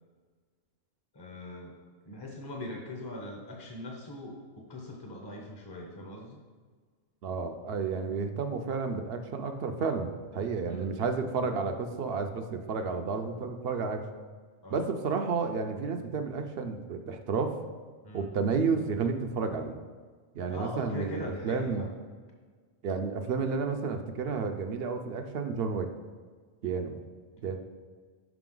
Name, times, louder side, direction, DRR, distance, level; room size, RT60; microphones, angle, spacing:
voice 1, 1.1-1.8 2.0-6.4 10.7-11.0 14.6-14.9 18.0-18.3 20.5-21.9, left 1 dB, 25° left, 0 dB, 0.7 m, -41 dB
voice 2, 7.2-14.0 14.7-17.6 18.1-19.7 20.3-21.9 22.8-25.9 26.6-27.0 27.4-27.6, right 5 dB, 65° right, 6 dB, 0.7 m, -31 dB
5.9 x 5.1 x 3.8 m, 1.5 s
omnidirectional pair, 1.2 m